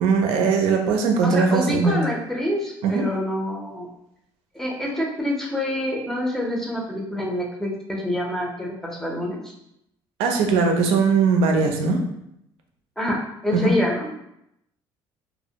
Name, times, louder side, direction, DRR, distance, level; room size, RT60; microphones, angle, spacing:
voice 1, 0.0-2.0 2.8-3.0 10.2-12.0 13.5-13.7, right 5 dB, 85° right, 3 dB, 0.4 m, -20 dB
voice 2, 1.2-3.9 4.5-9.5 13.0-13.2 13.4-14.1, left 1 dB, 5° left, -2 dB, 0.6 m, -26 dB
2.1 x 2.1 x 2.7 m, 0.79 s
cardioid pair, 100°, 10 cm